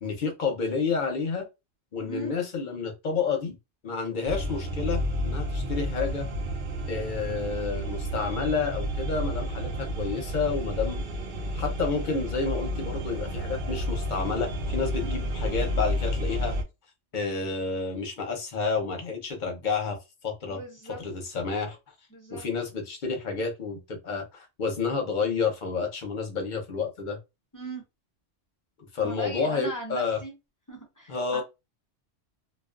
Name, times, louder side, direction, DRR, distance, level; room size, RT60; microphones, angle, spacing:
voice 1, 0.0-1.5 1.9-3.6 3.8-6.3 6.9-11.0 11.5-16.5 17.1-20.0 20.2-20.6 21.0-21.8 22.3-27.2 28.9-30.2 31.1-31.4, left 4 dB, 45° left, 0.7 m, -30 dB
voice 2, 2.0-2.3 15.0-15.2 20.5-21.0 22.1-22.4 27.5-27.8 29.0-30.3 30.7-31.4, right 1 dB, 25° left, 0.4 m, -38 dB
sound 1, 4.3-16.6, equal, 55° right, 0.8 m, -31 dB
2.3 x 2.3 x 2.4 m
omnidirectional pair, 1.3 m